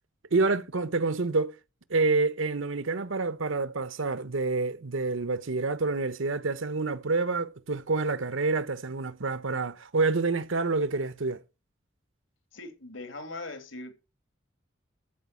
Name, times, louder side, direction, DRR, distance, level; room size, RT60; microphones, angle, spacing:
voice 1, 0.3-1.5 1.9-11.4, right 3 dB, 85° right, 1.0 m, -28 dB
voice 2, 12.5-13.9, left 2 dB, 80° left, 2.4 m, -40 dB
14.0 x 5.1 x 7.6 m
head